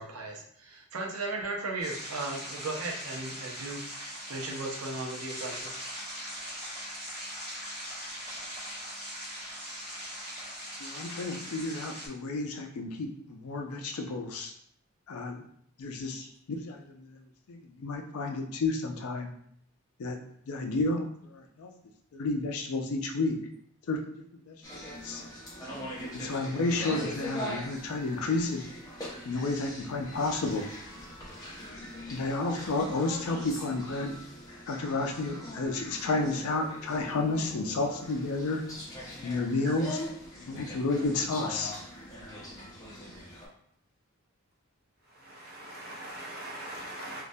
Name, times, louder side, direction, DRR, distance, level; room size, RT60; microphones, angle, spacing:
voice 1, 0.0-5.8, right 2 dB, 90° right, 0 dB, 0.5 m, -36 dB
sound 1, 1.8-12.1, equal, 15° right, 1.0 m, -40 dB
voice 2, 10.8-14.5 15.1-15.5 15.8-17.2 17.5-19.3 20.0-20.2 20.5-21.7 22.1-23.4 23.9-24.1 24.5-24.6 25.0-25.2 26.1-28.6 29.2-30.7 32.1-34.2 34.7-38.6 39.2-40.0 40.4-41.7, left 3 dB, 85° left, 4 dB, 0.4 m, -31 dB
sound 2, 24.6-43.5, equal, 15° left, 0.6 m, -42 dB
voice 3, 45.1-47.2, right 1 dB, 45° right, -3 dB, 0.6 m, -41 dB
2.2 x 2.1 x 2.6 m, 0.66 s
head